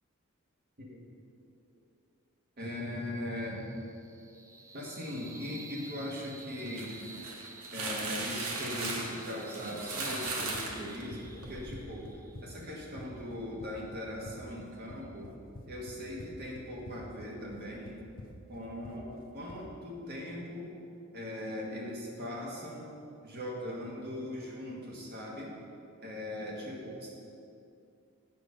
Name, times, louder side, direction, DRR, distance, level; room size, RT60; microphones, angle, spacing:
sound 1, 2.6-15.2, right 2 dB, 15° right, 0.4 m, -51 dB
voice 1, 2.6-3.6 4.7-7.0 7.7-12.1 12.4-15.3 15.7-18.0 18.5-20.7 21.1-22.9 23.2-25.5 26.0-27.1, left 1 dB, 50° right, -3 dB, 1.8 m, -40 dB
sound 2, 6.6-11.7, right 3 dB, 85° right, 1.2 m, -37 dB
Run, 10.3-19.7, left 2 dB, 45° left, 0.6 m, -49 dB
8.1 x 6.5 x 5.2 m, 2.6 s
head